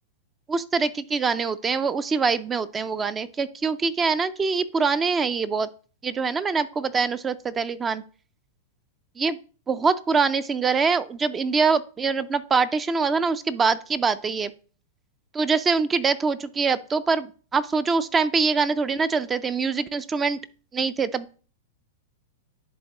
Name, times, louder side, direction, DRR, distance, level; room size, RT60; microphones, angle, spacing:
voice 1, 0.5-5.7 6.0-8.0 9.2-9.4 9.7-14.5 15.3-20.4 20.7-21.4, right 5 dB, 20° right, 15 dB, 0.4 m, -24 dB
11.0 x 3.6 x 2.9 m, 0.39 s
hypercardioid pair, 115°, 0 cm